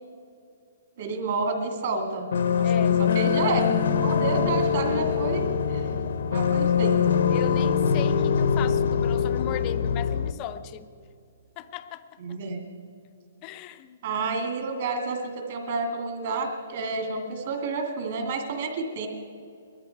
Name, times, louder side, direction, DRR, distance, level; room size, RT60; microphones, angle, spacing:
voice 1, 1.0-2.3 2.6-3.7 4.0-5.9 6.3-7.3 12.2-12.6 14.0-19.1, right 3 dB, 40° right, 3 dB, 2.1 m, -30 dB
sound 1, 2.3-10.3, left 7 dB, 60° left, 0.7 m, -23 dB
voice 2, 2.6-3.0 7.3-10.9 11.6-12.4 13.4-14.0, left 10 dB, 20° left, 11 dB, 0.5 m, -37 dB
21.0 x 13.0 x 4.6 m, 2.5 s
hypercardioid pair, 180°, 0 cm